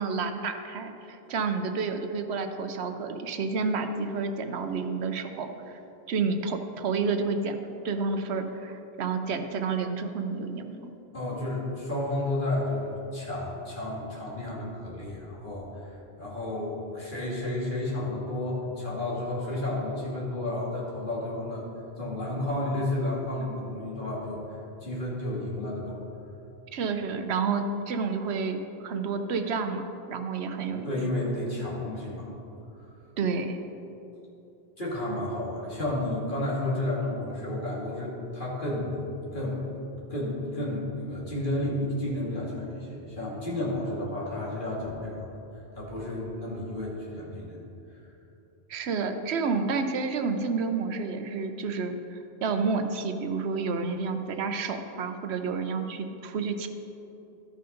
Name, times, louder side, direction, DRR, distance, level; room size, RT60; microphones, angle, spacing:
voice 1, 0.0-5.8 6.1-7.6 7.8-10.9 26.7-30.9 33.2-33.6 48.7-56.7, right 4 dB, 80° right, 7 dB, 0.9 m, -30 dB
voice 2, 11.1-15.9 16.2-21.6 22.0-25.9 30.7-32.3 34.8-39.6 40.1-45.3 45.7-47.6, left 1 dB, 50° left, -5 dB, 2.3 m, -32 dB
13.0 x 5.6 x 5.2 m, 2.9 s
omnidirectional pair, 1.1 m